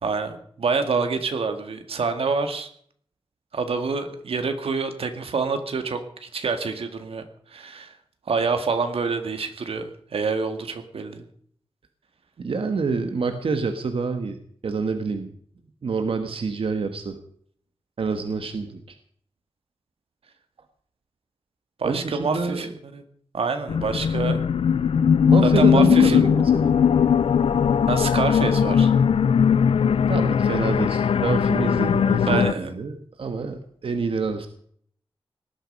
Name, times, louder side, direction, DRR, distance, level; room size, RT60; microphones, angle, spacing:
voice 1, 0.0-2.7 3.5-7.2 7.5-7.9 8.3-11.2 21.8-23.0 23.3-24.4 25.4-26.3 27.9-28.9 32.3-32.7, right 4 dB, 90° right, 7 dB, 1.9 m, -27 dB
voice 2, 12.4-14.4 14.6-15.3 15.8-17.2 18.0-18.9 21.8-22.7 25.3-26.7 30.1-34.5, right 4 dB, 70° right, 7 dB, 1.5 m, -27 dB
sound 1, 23.7-32.5, left 7 dB, 80° left, 0.5 m, -19 dB
19.0 x 12.0 x 5.4 m, 0.62 s
wide cardioid pair, 130°, 10 cm